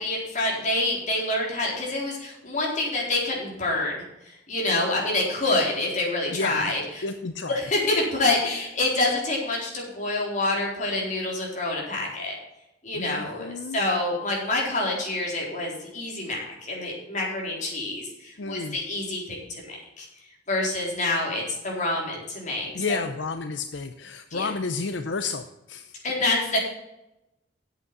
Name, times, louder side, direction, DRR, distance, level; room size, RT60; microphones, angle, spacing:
voice 1, 0.0-7.1 7.5-12.3 12.8-20.1 20.5-23.1 24.3-24.5 26.0-26.6, left 2 dB, 40° left, -2 dB, 4.0 m, -27 dB
voice 2, 6.3-6.7 7.0-7.6 13.0-13.8 18.4-18.8 22.7-25.9, left 4 dB, 75° left, 8 dB, 0.7 m, -31 dB
8.4 x 8.2 x 7.4 m, 0.90 s
head